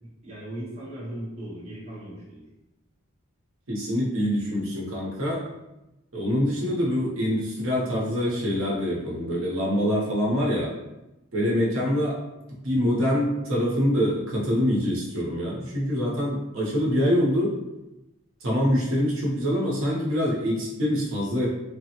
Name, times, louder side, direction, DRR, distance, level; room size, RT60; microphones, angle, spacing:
voice 1, 0.0-2.4, right 1 dB, 30° right, -8 dB, 0.8 m, -38 dB
voice 2, 3.7-5.4 6.1-10.7 11.3-12.2 12.6-17.6 18.4-21.5, equal, 70° right, -5 dB, 0.8 m, -25 dB
3.3 x 2.0 x 2.8 m, 0.96 s
head